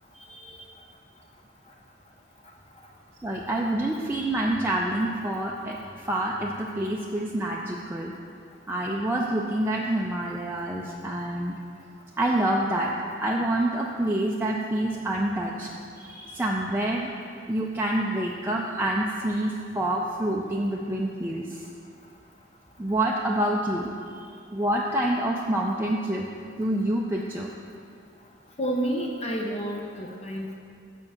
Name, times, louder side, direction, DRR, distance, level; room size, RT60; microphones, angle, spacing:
voice 1, 3.2-8.1 8.7-11.6 12.2-12.9 13.2-15.7 16.0-17.1 17.5-21.6 22.8-23.9 24.5-26.3 26.6-27.5, right 1 dB, 10° right, -2 dB, 0.4 m, -27 dB
voice 2, 28.6-30.6, right 1 dB, 35° left, -1 dB, 0.6 m, -30 dB
6.7 x 5.4 x 7.2 m, 2.3 s
head